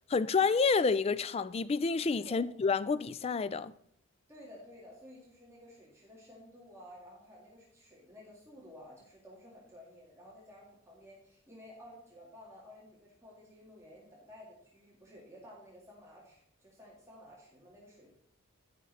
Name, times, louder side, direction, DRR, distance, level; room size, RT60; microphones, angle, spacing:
voice 1, 0.1-3.7, left 4 dB, 25° left, 0.3 m, -29 dB
voice 2, 4.3-18.1, left 1 dB, 15° right, 2.0 m, -53 dB
14.0 x 5.6 x 4.0 m
head